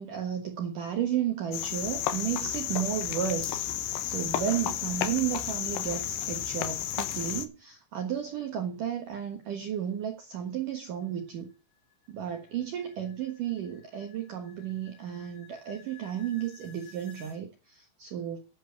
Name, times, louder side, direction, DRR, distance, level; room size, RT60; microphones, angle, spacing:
voice 1, 0.0-11.5 12.1-18.4, right 9 dB, 60° right, 2.5 m, -33 dB
Cricket, 1.5-7.5, left 11 dB, 75° left, 3.1 m, -32 dB
sound 1, 10.2-17.4, left 7 dB, 10° right, 2.4 m, -56 dB
10.5 x 7.4 x 6.8 m
omnidirectional pair, 5.2 m